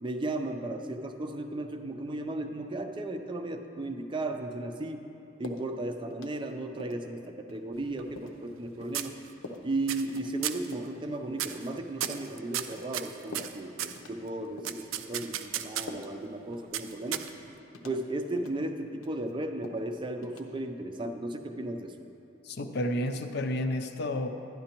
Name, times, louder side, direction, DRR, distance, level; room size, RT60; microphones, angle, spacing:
voice 1, 0.0-5.0 5.4-9.2 9.6-17.3 17.8-21.9, right 2 dB, 25° right, 5 dB, 0.4 m, -35 dB
sound 1, 5.4-5.7 6.1-6.5 6.8-7.0 7.5-7.6 8.2-8.4 8.8-9.0 9.4-9.7 10.1-10.3 10.7-11.0 11.4-11.7 12.0-12.3 12.7-13.1 13.3-13.6 14.0-14.3 14.6-14.8 15.2-15.4 15.9-16.3 16.5-16.7 17.1-17.4 17.7-18.0 18.4-18.6 18.9-19.3 19.6-19.9 20.2-20.4, left 2 dB, 85° left, 0.8 m, -45 dB
sound 2, 7.7-8.6 8.9-9.5 9.9-10.2 10.4-10.7 11.3-11.7 12.0-14.0 14.6-16.0 16.7-17.6, right 11 dB, 85° right, 0.4 m, -35 dB
voice 2, 22.4-24.3, left 1 dB, 55° left, 7 dB, 0.5 m, -31 dB
12.0 x 10.5 x 2.9 m, 2.7 s
head